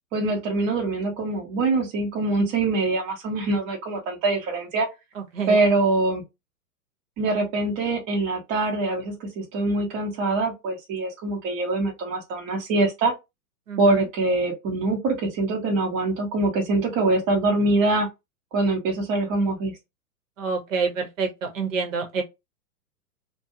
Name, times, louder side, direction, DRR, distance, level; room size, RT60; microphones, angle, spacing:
voice 1, 0.1-4.9 5.5-6.2 7.2-13.1 13.8-18.1 18.5-19.7, right 2 dB, 25° right, 0.9 m, -24 dB
voice 2, 20.4-21.3 21.6-22.2, right 5 dB, 55° right, 1.0 m, -26 dB
2.4 x 2.2 x 2.7 m
figure-of-eight pair, 110°, 46 cm